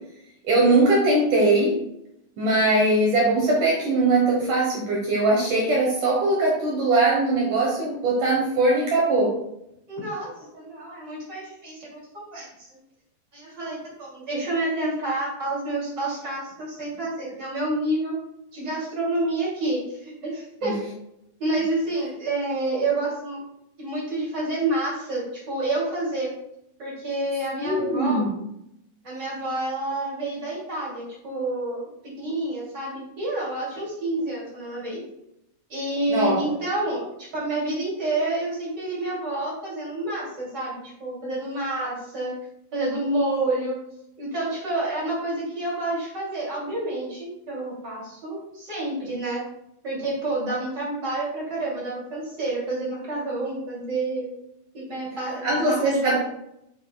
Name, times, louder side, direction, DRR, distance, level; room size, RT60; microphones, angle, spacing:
voice 1, 0.4-1.7 2.4-9.3 20.6-20.7 27.6-28.3 36.1-36.5 55.4-56.2, right 2 dB, 65° right, -3 dB, 2.2 m, -21 dB
voice 2, 9.9-12.7 13.3-18.2 18.5-20.8 21.4-23.4 23.8-26.3 26.8-28.2 29.0-31.9 32.2-35.0 35.7-42.3 42.7-43.8 44.2-49.4 49.8-54.3 54.7-56.2, right 2 dB, 30° right, -6 dB, 2.6 m, -29 dB
7.6 x 7.2 x 2.3 m, 0.80 s
omnidirectional pair, 4.8 m